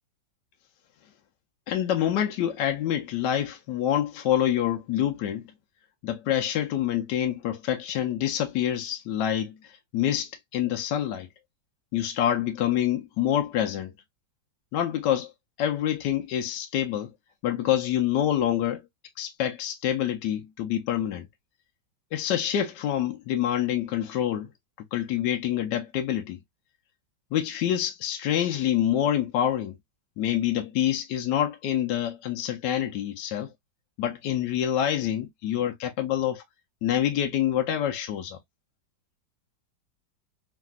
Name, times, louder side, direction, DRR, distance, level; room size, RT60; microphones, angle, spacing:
voice 1, 1.7-5.5 6.0-11.3 11.9-13.9 14.7-15.3 15.6-17.1 17.4-18.8 19.2-21.2 22.1-24.5 24.9-26.4 27.3-29.8 30.2-33.5 34.0-36.4 36.8-38.4, left 11 dB, 75° left, 1.1 m, -26 dB
3.3 x 2.6 x 2.2 m
omnidirectional pair, 2.1 m